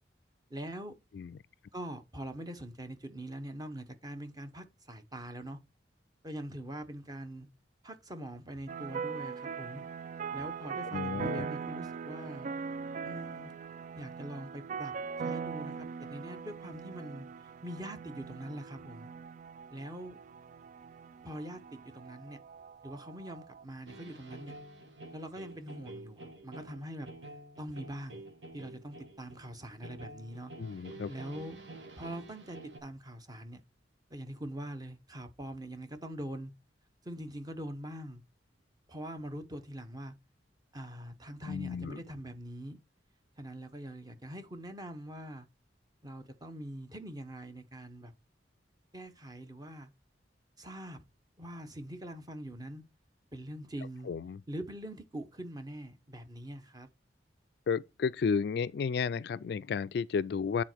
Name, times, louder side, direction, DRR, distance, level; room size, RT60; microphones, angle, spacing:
voice 1, 0.5-0.9 1.7-5.6 6.2-7.5 7.8-9.8 10.3-12.5 13.0-13.5 13.9-14.9 15.2-19.1 19.7-20.2 21.2-22.4 22.8-24.5 25.1-27.3 27.6-28.2 28.5-30.5 31.1-31.6 32.0-33.6 34.1-36.5 37.0-38.2 38.9-40.1 40.7-42.8 43.4-45.5 46.0-48.1 48.9-49.9 50.6-51.1 51.4-52.8 53.3-54.1 54.5-56.9, right 1 dB, 20° right, 1.1 m, -43 dB
sound 1, 8.7-23.6, right 6 dB, 45° right, 0.3 m, -41 dB
voice 2, 10.9-11.5 30.6-31.1 41.5-42.0 54.1-54.4 57.7-60.6, left 5 dB, 60° left, 0.3 m, -32 dB
sound 2, 23.9-32.8, right 2 dB, 90° right, 1.7 m, -49 dB
9.0 x 4.2 x 4.5 m
head